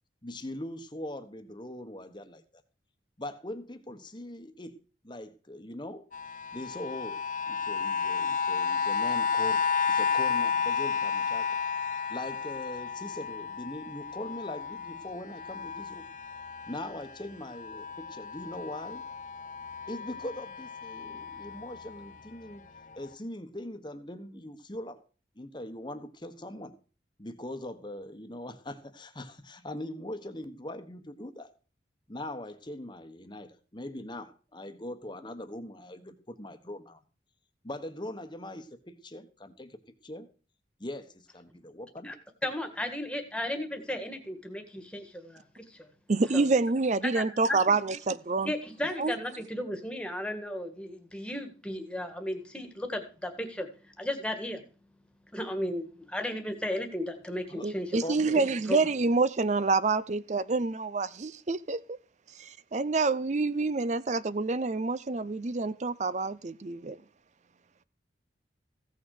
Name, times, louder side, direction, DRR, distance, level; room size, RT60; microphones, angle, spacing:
voice 1, 0.2-2.6 3.2-4.7 5.0-6.0 6.5-7.2 7.5-9.6 9.9-11.6 12.1-16.0 16.7-19.0 19.9-22.6 22.9-25.0 25.4-26.7 27.2-31.5 32.1-37.0 37.6-39.8 40.0-40.3 40.8-42.1 57.5-57.7 58.0-58.5, left 1 dB, 25° left, 1.2 m, -41 dB
sound 1, 6.1-17.1 17.5-22.1 22.8-22.9, left 6 dB, 40° left, 0.6 m, -32 dB
voice 2, 42.4-45.9 46.3-46.4 47.0-47.8 48.4-53.7 54.0-54.6 55.3-58.0 58.7-58.8, left 1 dB, 5° left, 1.7 m, -35 dB
voice 3, 46.1-48.5 49.0-49.1 57.6-61.8 62.3-67.0, right 3 dB, 40° right, 0.5 m, -27 dB
15.5 x 6.4 x 6.5 m
head